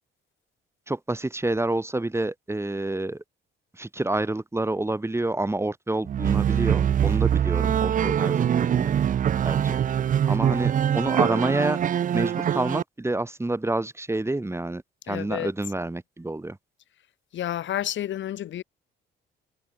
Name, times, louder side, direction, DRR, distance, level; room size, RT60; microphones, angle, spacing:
voice 1, 0.9-3.2 3.7-8.9 9.4-9.8 10.3-11.8 12.1-14.8 15.1-16.6, right 2 dB, 15° right, 2.7 m, -28 dB
sound 1, 6.0-12.8, right 9 dB, 40° right, 0.5 m, -23 dB
voice 2, 15.1-15.5 17.3-18.6, left 11 dB, 70° left, 2.0 m, -30 dB
cardioid pair, 90°, 20 cm